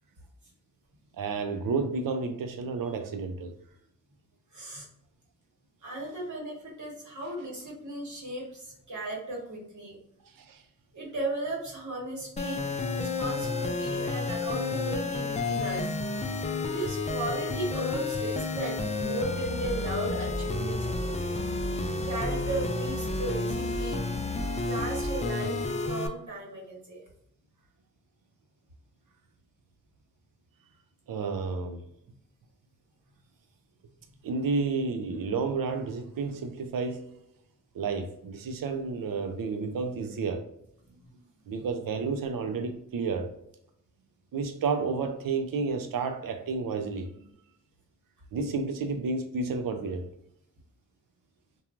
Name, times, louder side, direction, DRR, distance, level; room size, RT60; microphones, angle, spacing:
voice 1, 1.2-3.5 10.3-10.6 31.1-31.8 34.2-37.1 37.7-40.4 41.5-43.3 44.3-47.2 48.3-50.1, right 4 dB, 90° right, 0.5 m, -31 dB
voice 2, 4.5-4.9 5.8-10.0 10.9-12.6 12.9-16.0 16.4-21.5 21.8-24.0 24.6-27.0 40.9-41.2 41.6-41.7, right 2 dB, 60° right, 1.1 m, -36 dB
sound 1, 12.4-26.1, left 3 dB, 20° left, 0.3 m, -31 dB
3.0 x 2.2 x 2.4 m
wide cardioid pair, 65°, 33 cm